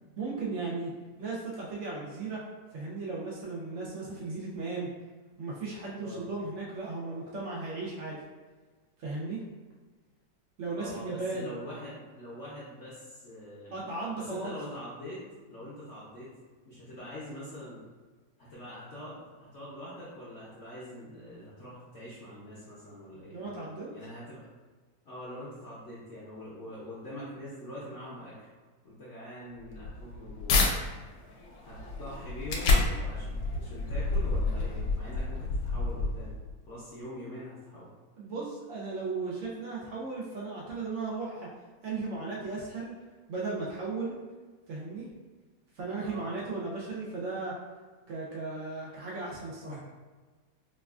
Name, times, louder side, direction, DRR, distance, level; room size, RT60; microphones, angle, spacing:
voice 1, 0.2-2.4 2.7-4.9 5.4-8.2 9.0-9.5 10.6-11.5 13.7-14.5 23.3-23.9 38.2-41.5 41.8-42.9 43.3-44.2 44.7-45.1 45.7-47.6 48.1-49.8, right 3 dB, 85° right, -5 dB, 0.6 m, -36 dB
voice 2, 10.7-13.8 14.1-15.2 15.5-16.3 16.6-17.8 18.4-23.4 23.9-24.4 25.1-28.3 28.8-30.6 31.6-36.3 36.7-37.9 46.0-46.3 49.7-49.8, left 1 dB, 60° left, -8 dB, 0.8 m, -44 dB
sound 1, 29.6-30.7 31.2-36.5, left 3 dB, 80° left, 1.3 m, -29 dB
4.4 x 2.4 x 2.3 m, 1.4 s
omnidirectional pair, 1.9 m